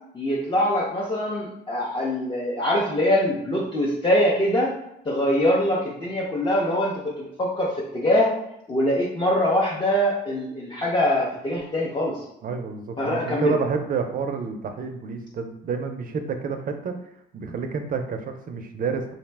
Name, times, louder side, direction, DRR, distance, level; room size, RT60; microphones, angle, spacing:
voice 1, 0.1-4.7 5.0-8.3 8.7-12.2 13.0-13.6, left 1 dB, 25° left, -5 dB, 0.6 m, -23 dB
voice 2, 12.4-16.9 17.3-19.1, right 5 dB, 45° right, 6 dB, 0.4 m, -29 dB
2.6 x 2.1 x 3.2 m, 0.81 s
cardioid pair, 90°, 20 cm